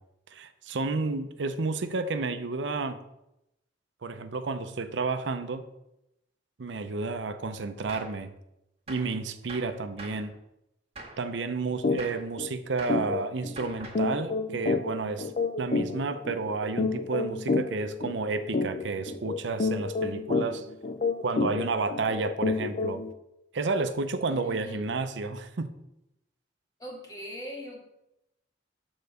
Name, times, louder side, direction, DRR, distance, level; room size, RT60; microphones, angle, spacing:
voice 1, 0.3-3.0 4.0-5.6 6.6-8.3 8.9-10.3 11.2-15.3 15.6-20.7 21.2-23.0 23.5-25.7, right 3 dB, 85° right, 9 dB, 0.6 m, -31 dB
Gunshot gunfire, 7.9-8.2 8.9-9.2 9.5-10.3 11.0-11.3 12.0-12.3 12.8-13.1 13.6-14.1, right 2 dB, 35° right, 1.6 m, -44 dB
sound 1, 11.8-12.0 12.4-12.5 12.9-23.1, left 3 dB, 40° left, 0.5 m, -29 dB
voice 2, 24.3-24.9 26.8-27.8, equal, 20° left, -2 dB, 1.8 m, -41 dB
6.8 x 4.0 x 6.5 m, 0.87 s
head